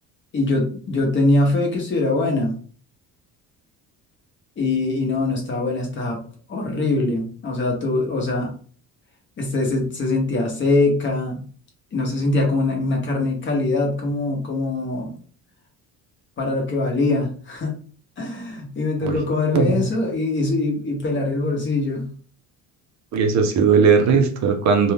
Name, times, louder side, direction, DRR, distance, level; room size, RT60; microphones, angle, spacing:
voice 1, 0.3-2.6 4.6-6.2 6.5-8.5 9.4-11.4 11.9-15.1 16.4-17.7 18.2-22.1, left 2 dB, 35° left, 0 dB, 0.9 m, -22 dB
voice 2, 19.5-19.9 23.1-24.9, right 5 dB, 55° right, 5 dB, 0.5 m, -18 dB
2.6 x 2.2 x 3.3 m, 0.42 s
cardioid pair, 160°, 35 cm